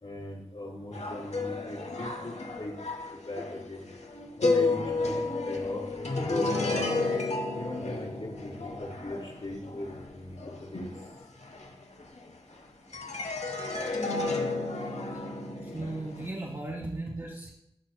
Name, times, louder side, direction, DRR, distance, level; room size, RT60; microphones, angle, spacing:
voice 1, 0.0-2.8 3.1-3.9 4.4-6.9 7.6-10.9, left 1 dB, 70° left, -4 dB, 2.3 m, -39 dB
sound 1, 0.9-12.5 12.9-16.3, left 3 dB, 90° left, 0.7 m, -32 dB
voice 2, 15.6-17.5, right 2 dB, 35° right, -3 dB, 1.2 m, -36 dB
11.5 x 5.5 x 2.2 m, 0.80 s
wide cardioid pair, 50°, 11 cm